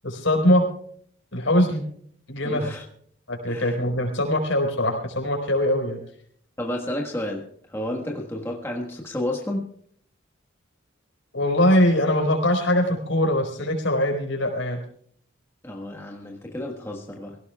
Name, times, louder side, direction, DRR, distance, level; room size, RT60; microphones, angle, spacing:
voice 1, 0.0-0.6 1.3-1.8 2.3-2.7 3.3-6.0 11.3-14.8, left 1 dB, 75° left, 4.4 m, -22 dB
voice 2, 2.4-2.8 3.5-3.7 6.6-9.8 15.6-17.4, left 1 dB, 10° left, 1.4 m, -31 dB
24.5 x 17.0 x 2.3 m
head